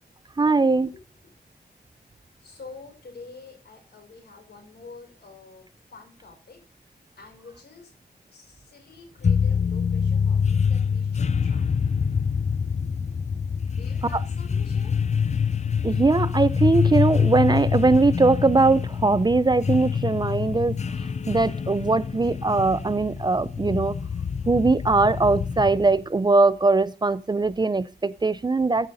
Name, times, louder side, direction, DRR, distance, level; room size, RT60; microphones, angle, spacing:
voice 1, 0.4-0.9 15.8-20.8 21.3-24.0 24.5-28.9, right 3 dB, 25° right, 0.4 m, -21 dB
voice 2, 2.4-6.7 7.2-7.9 8.3-11.8 13.7-14.9, left 4 dB, 85° left, 5.4 m, -47 dB
sound 1, 9.2-26.0, left 6 dB, 40° left, 0.5 m, -25 dB
14.5 x 5.5 x 3.9 m
wide cardioid pair, 100°, 17 cm